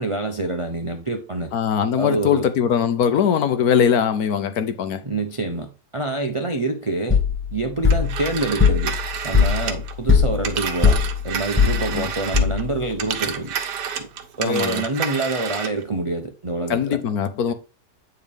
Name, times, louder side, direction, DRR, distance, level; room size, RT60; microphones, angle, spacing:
voice 1, 0.0-1.5 2.0-2.5 5.0-7.2 7.5-9.0 9.2-13.5 14.0-14.1 14.4-17.0 17.5-17.6, right 2 dB, 45° right, 0.4 m, -26 dB
voice 2, 1.5-5.0 11.9-12.1 14.4-14.8 16.7-17.5, left 8 dB, 65° left, 1.2 m, -21 dB
sound 1, 7.1-12.9, left 5 dB, 10° left, 1.0 m, -20 dB
Telephone, 7.9-12.6 12.9-15.8, right 8 dB, 80° right, 1.5 m, -30 dB
8.7 x 4.6 x 3.5 m
omnidirectional pair, 1.8 m